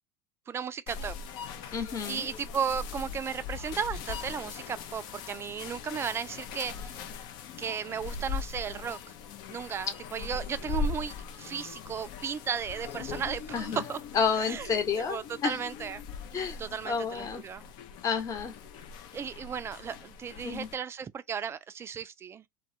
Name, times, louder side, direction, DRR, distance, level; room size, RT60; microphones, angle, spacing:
voice 1, 0.5-1.2 2.1-7.0 7.6-9.0 9.5-14.0 14.4-14.7 15.1-16.0 16.6-17.6 19.1-22.4, right 7 dB, 25° right, 0.3 m, -35 dB
sound 1, 0.9-20.8, left 5 dB, 55° left, 0.4 m, -40 dB
voice 2, 1.7-2.3 13.5-13.8 14.1-15.6 16.3-16.6 16.8-17.4 18.0-18.5 20.4-20.7, left 6 dB, 35° left, 0.9 m, -30 dB
2.2 x 2.1 x 2.6 m
hypercardioid pair, 85°, 9 cm